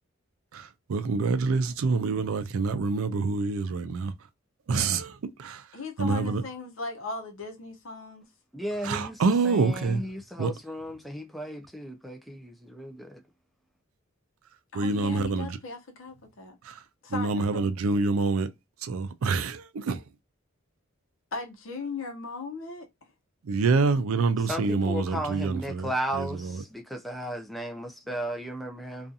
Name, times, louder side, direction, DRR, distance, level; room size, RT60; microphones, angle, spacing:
voice 1, 0.5-4.1 4.7-5.6 6.0-6.4 8.8-10.0 10.4-10.5 14.7-15.6 16.6-16.8 17.1-18.5 18.8-20.0 23.4-26.6, right 4 dB, 75° right, 0.4 m, -27 dB
voice 2, 5.7-8.2 14.7-16.6 17.0-17.7 21.3-22.9, left 4 dB, 65° left, 0.8 m, -37 dB
voice 3, 8.5-13.2 24.5-29.1, equal, ahead, 0.3 m, -35 dB
2.6 x 2.4 x 2.3 m
head